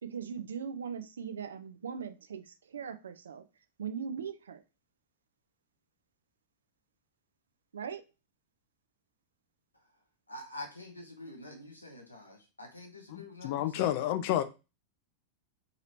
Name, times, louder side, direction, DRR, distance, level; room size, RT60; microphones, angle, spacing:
voice 1, 0.0-3.4 3.8-4.6 7.7-8.0, right 7 dB, 65° right, 0.3 m, -39 dB
voice 2, 10.3-13.9, left 1 dB, 85° left, 0.8 m, -46 dB
voice 3, 13.1-14.4, left 12 dB, 50° left, 0.3 m, -30 dB
2.9 x 2.9 x 2.8 m
figure-of-eight pair, 90°, 0 cm